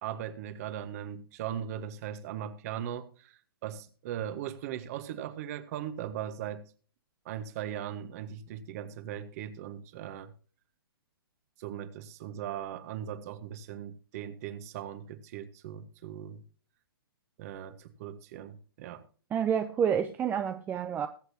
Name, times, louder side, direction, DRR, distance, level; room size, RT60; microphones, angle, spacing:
voice 1, 0.0-6.7 7.2-10.3 11.6-16.4 17.4-19.1, right 10 dB, 40° right, 1.4 m, -39 dB
voice 2, 19.3-21.1, right 8 dB, 15° right, 0.6 m, -28 dB
21.0 x 8.0 x 2.8 m
hypercardioid pair, 140°, 13 cm